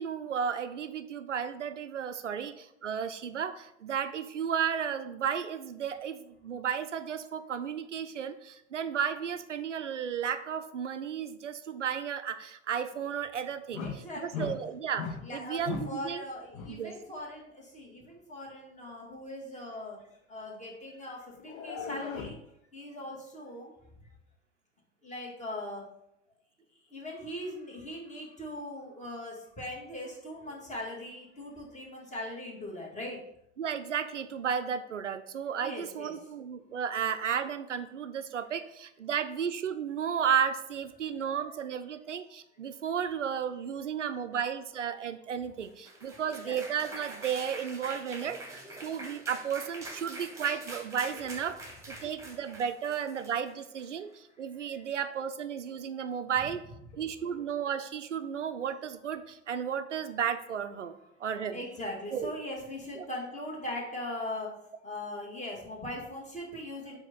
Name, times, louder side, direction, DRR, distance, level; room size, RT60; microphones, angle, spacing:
voice 1, 0.0-16.2 16.7-17.0 33.6-51.6 51.9-56.6 57.0-61.6 62.1-62.3 63.0-63.1, right 8 dB, 85° right, 10 dB, 0.5 m, -33 dB
sound 1, 13.7-14.1 14.3-14.6 15.0-15.3 15.7-16.0 16.5-16.8 21.4-22.4, left 6 dB, 45° left, 0.9 m, -37 dB
voice 2, 13.8-14.5 15.2-20.0 20.3-22.4 22.7-23.8 25.0-25.8 26.9-33.2 35.6-36.1 46.4-46.6 54.6-54.8 56.9-57.0 57.3-57.4 61.5-64.5 64.8-67.0, left 1 dB, 20° left, -3 dB, 2.3 m, -40 dB
sound 2, 45.6-53.9, right 2 dB, 10° right, 1.8 m, -44 dB
7.6 x 2.9 x 5.4 m, 0.78 s
figure-of-eight pair, 75°, 36 cm